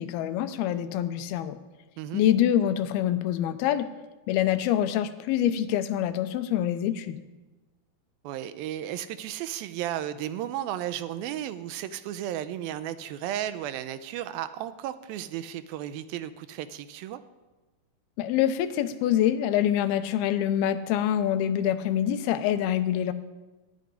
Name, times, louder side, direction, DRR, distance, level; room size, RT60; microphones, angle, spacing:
voice 1, 0.0-1.6 2.1-3.9 4.3-7.2 18.2-23.1, left 11 dB, 85° left, 11 dB, 2.7 m, -25 dB
voice 2, 8.2-17.2, right 11 dB, 80° right, 12 dB, 2.4 m, -34 dB
13.5 x 8.3 x 10.0 m, 1.2 s
omnidirectional pair, 4.4 m